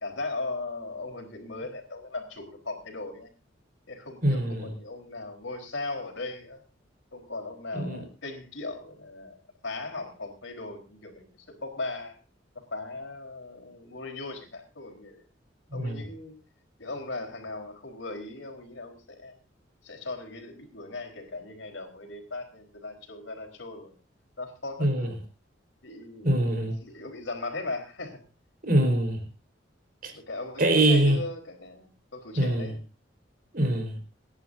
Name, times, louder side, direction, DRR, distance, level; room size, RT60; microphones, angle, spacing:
voice 1, 0.0-3.3 3.9-6.6 7.1-9.4 9.6-11.2 11.6-12.1 12.6-15.2 15.7-16.3 16.8-19.0 19.2-19.3 19.8-23.9 24.4-25.1 25.8-26.5 26.8-28.2 30.1-32.8, left 2 dB, 90° left, 3 dB, 4.1 m, -38 dB
voice 2, 4.2-4.7 7.7-8.1 15.7-16.0 24.8-25.1 26.2-26.8 28.6-29.2 30.0-30.1 30.6-31.2 32.4-32.7 33.5-34.0, right 1 dB, 50° right, 5 dB, 4.3 m, -24 dB
27.5 x 10.5 x 2.6 m, 0.28 s
head